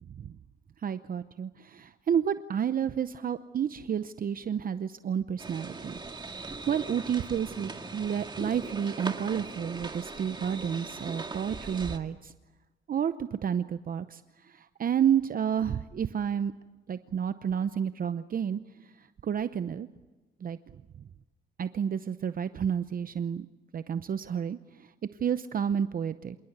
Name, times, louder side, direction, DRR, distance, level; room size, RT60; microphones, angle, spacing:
voice 1, 0.8-6.0 6.3-12.3 12.9-16.5 16.9-18.6 19.2-19.9 20.4-20.6 21.6-23.5 23.7-24.9 25.2-26.4, right 8 dB, 45° right, 12 dB, 0.8 m, -30 dB
sound 1, 5.4-12.0, right 3 dB, 25° right, 2.0 m, -40 dB
27.0 x 18.5 x 8.1 m, 1.1 s
cardioid pair, 90°, 20 cm